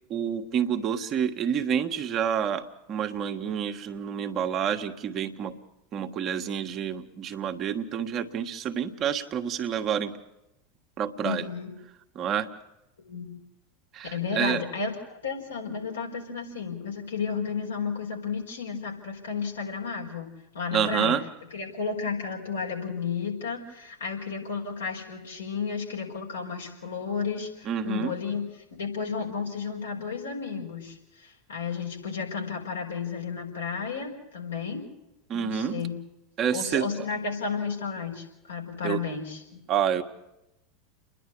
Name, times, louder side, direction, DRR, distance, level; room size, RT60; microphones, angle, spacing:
voice 1, 0.1-5.5 5.9-10.1 11.0-11.5 12.1-12.5 13.9-14.6 20.7-21.2 27.6-28.1 35.3-35.8 36.4-37.0 38.8-39.0 39.7-40.0, right 8 dB, 40° right, 6 dB, 1.4 m, -28 dB
voice 2, 11.2-11.7 13.0-13.4 14.1-20.3 20.5-21.1 21.5-28.4 28.8-34.8 35.3-35.9 36.5-39.6, left 5 dB, 80° left, -1 dB, 4.8 m, -33 dB
29.5 x 11.0 x 8.5 m, 0.90 s
hypercardioid pair, 85°, 0 cm